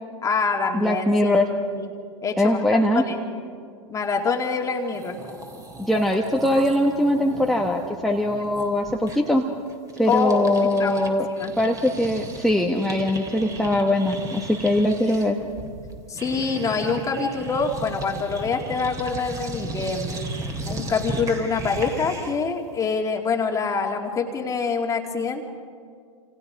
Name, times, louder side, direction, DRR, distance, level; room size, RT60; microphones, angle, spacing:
voice 1, 0.2-1.3 1.7-1.9 2.2-3.2 3.9-5.2 10.1-11.5 16.1-20.1 20.7-25.4, left 4 dB, 20° left, 2 dB, 2.4 m, -25 dB
voice 2, 0.7-1.5 2.4-3.0 5.8-9.4 10.0-11.3 11.6-15.4, left 1 dB, ahead, 0 dB, 1.5 m, -21 dB
sound 1, 4.6-4.7 4.9-11.1 11.4-22.5, right 2 dB, 20° right, 3.2 m, -36 dB
28.0 x 28.0 x 4.8 m, 2.3 s
hypercardioid pair, 120°, 17 cm